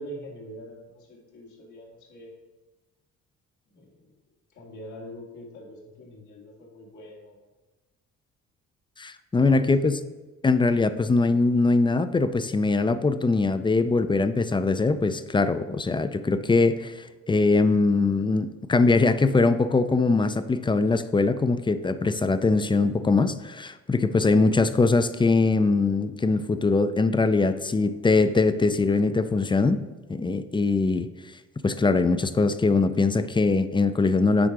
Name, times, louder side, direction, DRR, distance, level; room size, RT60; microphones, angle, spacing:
voice 1, 0.0-2.3 3.7-3.9 4.5-7.4 9.4-9.9, equal, 75° left, -3 dB, 2.2 m, -43 dB
voice 2, 9.0-10.0 10.4-29.8 30.1-31.1 31.6-34.5, left 3 dB, 15° left, 12 dB, 0.4 m, -22 dB
8.9 x 3.6 x 4.7 m, 1.2 s
cardioid pair, 90°, 30 cm